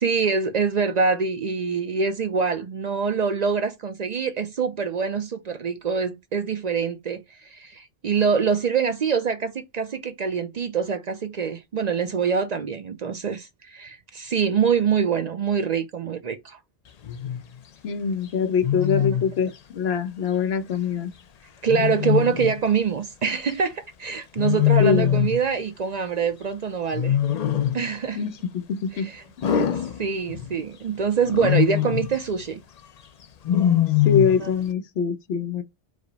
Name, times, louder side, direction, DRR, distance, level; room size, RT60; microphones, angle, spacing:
voice 1, 0.0-16.6 19.0-19.1 21.6-27.2 27.7-28.2 28.9-29.2 30.0-32.6 34.4-34.5, right 6 dB, 55° right, 0.5 m, -25 dB
Wild animals, 17.0-17.4 18.6-19.3 21.7-22.6 24.4-25.4 26.9-27.9 29.4-30.5 31.3-32.1 33.4-34.5, left 11 dB, 50° left, 0.5 m, -22 dB
voice 2, 17.8-21.1 24.8-25.2 28.1-28.4 28.7-29.1 29.5-29.9 34.0-35.6, left 6 dB, 85° left, 0.9 m, -24 dB
4.8 x 2.0 x 4.0 m
omnidirectional pair, 1.0 m